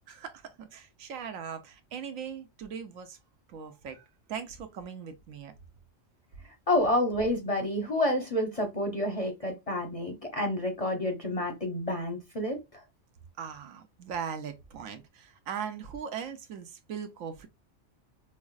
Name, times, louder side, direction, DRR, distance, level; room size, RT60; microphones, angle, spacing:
voice 1, 0.1-3.2 3.5-5.5 13.4-17.5, right 7 dB, 85° right, 1.1 m, -39 dB
voice 2, 6.7-12.8, left 1 dB, 35° left, 0.6 m, -29 dB
5.4 x 2.0 x 2.4 m
omnidirectional pair, 1.4 m